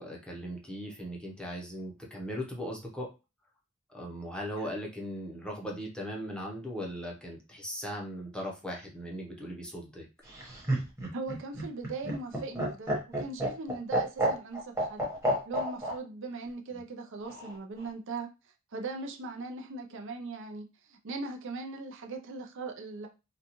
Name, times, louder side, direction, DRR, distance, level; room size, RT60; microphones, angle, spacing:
voice 1, 0.0-3.1 3.9-10.1, equal, 5° left, 0.7 m, -38 dB
Laughter, 10.3-15.9 17.2-17.9, right 1 dB, 15° right, 1.0 m, -30 dB
voice 2, 11.1-12.9 13.2-15.1 15.5-18.3 18.7-23.1, right 3 dB, 60° right, 0.5 m, -39 dB
3.9 x 2.2 x 2.9 m
head